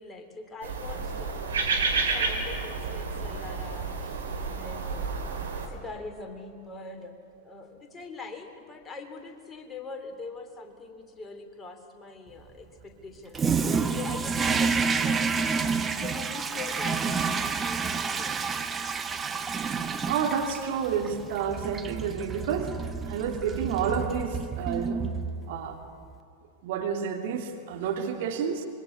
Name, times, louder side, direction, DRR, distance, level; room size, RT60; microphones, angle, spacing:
voice 1, 0.0-1.5 1.9-5.3 5.7-7.1 7.4-18.7, left 3 dB, 20° left, 5 dB, 2.9 m, -43 dB
sound 1, 0.6-5.7, right 4 dB, 70° right, 3.9 m, -30 dB
Toilet flush, 13.3-25.7, right 5 dB, 15° right, 1.2 m, -29 dB
voice 2, 20.1-22.7 23.1-25.1 25.5-25.8 26.6-28.7, right 7 dB, 55° right, 2 dB, 2.9 m, -30 dB
25.5 x 23.0 x 8.3 m, 2.5 s
figure-of-eight pair, 90°, 0 cm